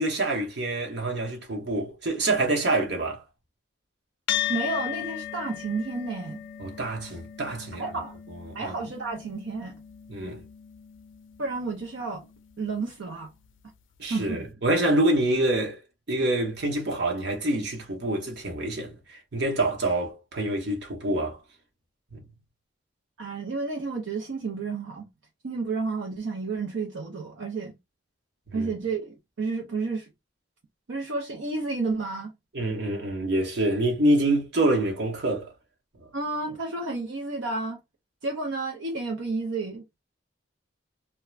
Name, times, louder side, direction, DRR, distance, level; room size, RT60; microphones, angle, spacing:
voice 1, 0.0-3.2 6.6-7.8 8.3-8.7 10.1-10.4 14.0-15.8 16.1-21.4 22.1-22.2 28.5-28.7 32.5-35.5, right 1 dB, 60° right, 0.9 m, -26 dB
sound 1, 4.3-12.9, left 12 dB, 80° left, 0.4 m, -37 dB
voice 2, 4.5-6.4 7.8-8.2 8.5-9.8 11.4-12.3 12.6-13.3 14.1-14.5 23.2-25.1 25.4-27.8 28.5-30.1 30.9-32.3 36.1-37.8 38.2-39.8, right 3 dB, 75° right, 0.6 m, -31 dB
2.4 x 2.2 x 3.1 m
head